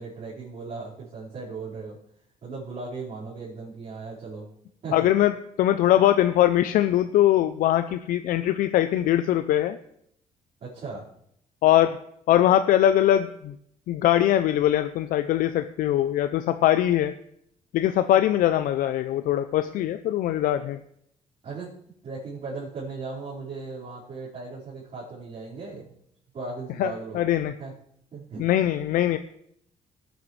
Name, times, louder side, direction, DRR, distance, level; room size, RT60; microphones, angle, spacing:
voice 1, 0.0-2.0 2.4-4.5 4.8-5.1 10.6-11.1 20.3-20.4 21.4-21.7 22.0-25.9 26.3-27.2 27.6-27.7 28.1-28.5, right 4 dB, 55° right, -10 dB, 4.7 m, -37 dB
voice 2, 4.9-9.8 11.6-12.0 12.3-13.5 13.9-17.1 17.7-20.8 26.8-27.5 28.4-29.2, left 12 dB, 80° left, 10 dB, 0.5 m, -22 dB
18.5 x 9.2 x 3.2 m, 0.72 s
cardioid pair, 110°, 14 cm